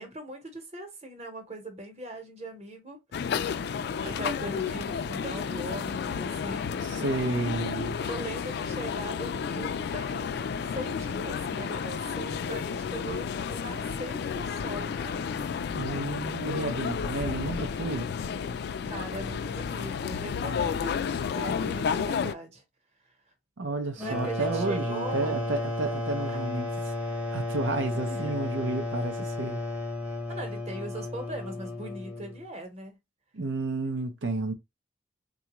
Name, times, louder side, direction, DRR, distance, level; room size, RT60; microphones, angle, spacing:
voice 1, 0.0-3.0 3.2-3.7 4.0-6.8 8.0-15.1 18.8-22.6 24.0-25.4 27.9-28.3 30.3-33.0, right 1 dB, 35° right, 1.0 m, -40 dB
sound 1, 3.1-22.3, left 6 dB, 60° left, 0.3 m, -32 dB
voice 2, 6.8-8.0 15.7-18.1 23.6-26.7 27.3-29.6 33.3-34.5, right 2 dB, 85° right, 0.6 m, -31 dB
sound 2, 24.0-32.5, left 2 dB, 10° right, 0.7 m, -33 dB
3.8 x 2.3 x 2.9 m
head